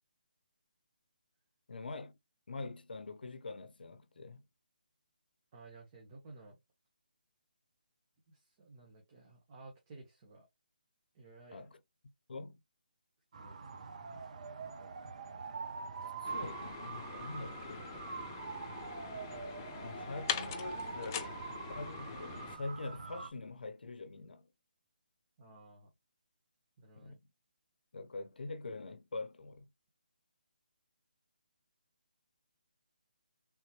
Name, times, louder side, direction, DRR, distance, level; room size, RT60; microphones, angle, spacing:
voice 1, 1.7-2.2 2.5-4.4 11.5-11.8 12.3-12.6 16.0-17.9 19.8-21.4 21.7-24.5 27.0-27.2 27.9-29.7, left 3 dB, 75° left, 0.6 m, -44 dB
voice 2, 5.5-6.6 8.3-10.5 11.1-11.7 13.4-13.6 17.8-18.8 25.4-25.9 26.8-27.1, right 3 dB, 30° right, 0.9 m, -55 dB
sound 1, 13.3-23.3, right 5 dB, 45° right, 0.5 m, -44 dB
sound 2, 16.2-22.6, left 8 dB, 20° left, 0.3 m, -43 dB
3.6 x 3.0 x 2.8 m
hypercardioid pair, 160°, 5 cm